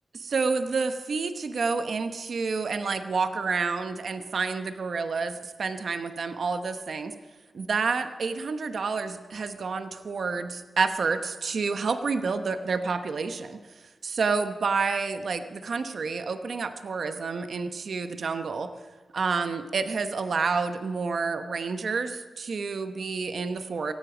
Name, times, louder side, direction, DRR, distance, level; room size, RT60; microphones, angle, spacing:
voice 1, 0.2-7.1 7.5-13.6 14.0-18.7 19.1-23.9, right 4 dB, 65° right, 8 dB, 0.9 m, -29 dB
17.5 x 15.5 x 5.0 m, 1.4 s
wide cardioid pair, 120°, 0 cm